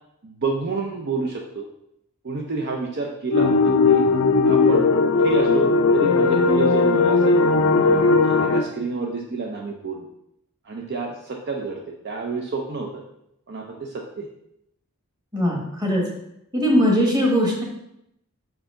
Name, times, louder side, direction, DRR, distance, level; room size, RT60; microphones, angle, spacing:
voice 1, 0.2-1.7 2.2-4.0 4.5-4.9 5.2-5.7 5.9-7.4 7.8-10.1 10.6-13.0 13.5-14.3, right 4 dB, 50° right, 0 dB, 0.6 m, -29 dB
sound 1, 3.3-8.6, left 3 dB, 65° left, 0.5 m, -18 dB
voice 2, 15.3-16.0 16.5-17.6, equal, 20° right, -2 dB, 1.4 m, -20 dB
5.6 x 4.7 x 3.7 m, 0.79 s
head